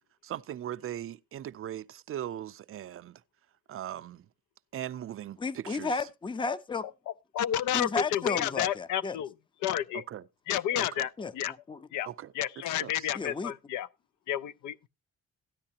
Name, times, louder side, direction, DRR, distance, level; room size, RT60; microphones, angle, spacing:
voice 1, 0.2-3.2 3.7-4.3 4.7-6.1 9.9-10.2 10.8-11.1 12.1-13.1, right 11 dB, 45° right, 0.5 m, -39 dB
voice 2, 5.4-6.9 7.7-9.2 11.2-11.8 13.1-13.5, left 4 dB, 15° left, 0.5 m, -33 dB
voice 3, 7.3-9.3 9.6-10.0 10.5-11.5 11.9-12.1 12.4-13.9 14.3-14.9, left 11 dB, 80° left, 0.5 m, -31 dB
13.5 x 9.7 x 2.8 m
cardioid pair, 90°, 30 cm